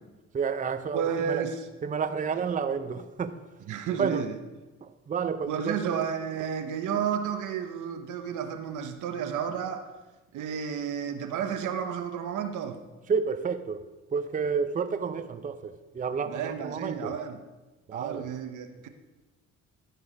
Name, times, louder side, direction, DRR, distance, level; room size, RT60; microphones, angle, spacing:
voice 1, 0.3-1.5 1.8-3.4 4.0-4.3 4.8-6.0 13.1-17.2 17.9-18.3, right 6 dB, 25° right, 0.5 m, -30 dB
voice 2, 0.9-1.6 3.7-4.4 5.5-9.9 10.3-12.8 16.3-17.4 17.9-18.9, right 8 dB, 80° right, 1.0 m, -32 dB
13.0 x 4.7 x 5.0 m
cardioid pair, 90°, 30 cm